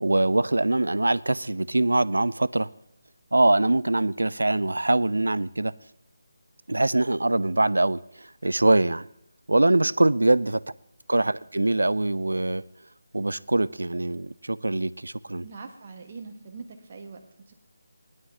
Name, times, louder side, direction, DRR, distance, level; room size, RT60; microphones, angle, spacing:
voice 1, 0.0-2.7 3.3-5.7 6.7-9.1 9.5-10.6 11.1-12.6 13.1-15.5, right 2 dB, 70° right, 0.4 m, -23 dB
voice 2, 15.4-17.5, right 4 dB, 35° right, 1.4 m, -43 dB
19.0 x 11.0 x 2.8 m
figure-of-eight pair, 155°, 0 cm